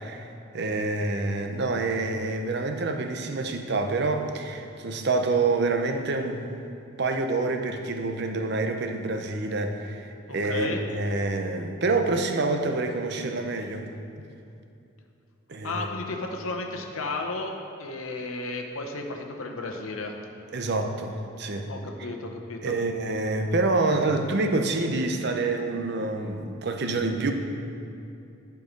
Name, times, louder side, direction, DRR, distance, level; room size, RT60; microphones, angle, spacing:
voice 1, 0.0-6.4 7.0-13.9 15.5-15.9 20.5-21.7 22.0-22.1 22.6-27.3, right 3 dB, 55° right, 5 dB, 0.7 m, -27 dB
voice 2, 10.3-10.8 15.6-17.5 17.8-20.2 21.7-22.8, left 3 dB, 80° left, 2 dB, 0.8 m, -33 dB
11.0 x 4.7 x 5.1 m, 2.6 s
head